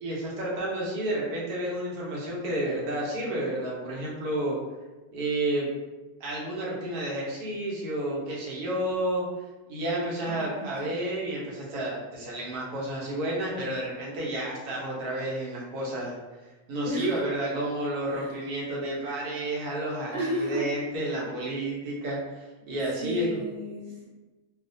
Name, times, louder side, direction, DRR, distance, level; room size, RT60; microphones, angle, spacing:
voice 1, 0.0-4.6 5.1-5.7 6.2-9.2 9.7-16.2 16.7-23.3, right 1 dB, 90° right, -4 dB, 1.3 m, -31 dB
voice 2, 10.2-10.9 16.8-17.2 18.1-18.4 20.1-20.7 23.0-24.1, right 1 dB, 50° right, -7 dB, 0.7 m, -33 dB
2.9 x 2.1 x 2.6 m, 1.2 s
omnidirectional pair, 1.6 m